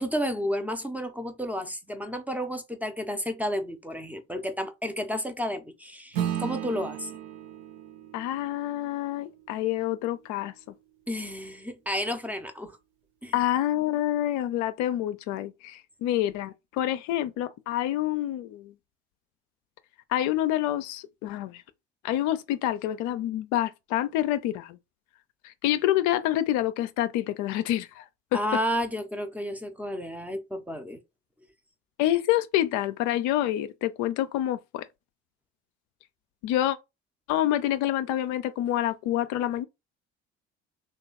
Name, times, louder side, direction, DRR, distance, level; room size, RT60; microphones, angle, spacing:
voice 1, 0.0-7.1 11.1-12.8 13.2-13.3 28.3-31.0, equal, 5° right, 0.6 m, -31 dB
Acoustic guitar / Strum, 6.1-10.9, right 10 dB, 70° right, 0.8 m, -36 dB
voice 2, 8.1-10.5 13.3-18.7 20.1-21.6 22.0-24.8 25.4-28.0 28.3-28.4 32.0-34.8 36.4-36.8 37.3-39.7, left 13 dB, 60° left, 0.5 m, -27 dB
3.1 x 2.3 x 4.0 m
hypercardioid pair, 60°, 35 cm